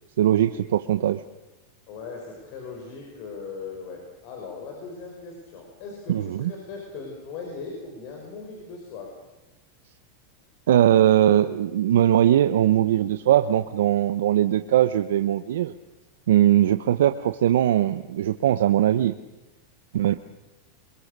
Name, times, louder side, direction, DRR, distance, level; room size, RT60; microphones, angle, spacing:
voice 1, 0.2-1.2 6.1-6.5 10.7-15.7 16.3-19.1 19.9-20.1, right 11 dB, 85° right, 10 dB, 0.8 m, -20 dB
voice 2, 1.9-9.1, left 4 dB, 50° left, 1 dB, 5.6 m, -39 dB
26.0 x 22.0 x 6.7 m, 1.0 s
supercardioid pair, 140°, 0 cm